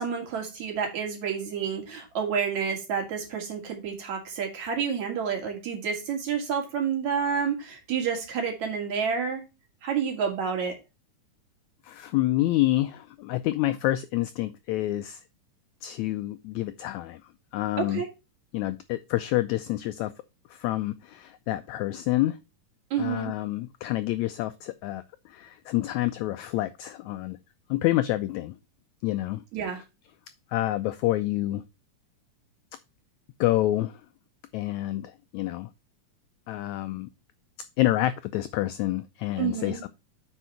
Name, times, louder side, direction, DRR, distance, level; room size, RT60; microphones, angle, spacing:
voice 1, 0.0-9.4 9.8-10.7 17.8-18.1 22.9-23.3 29.5-29.8 39.4-39.8, right 6 dB, 60° right, 3.5 m, -29 dB
voice 2, 11.8-15.2 15.8-17.2 17.5-18.0 18.5-20.1 20.5-22.4 23.0-27.4 27.7-28.5 29.0-29.4 30.5-31.6 33.4-34.0 34.5-35.7 36.5-37.1 37.8-39.9, left 16 dB, 85° left, 1.6 m, -28 dB
8.2 x 5.5 x 4.4 m
omnidirectional pair, 3.8 m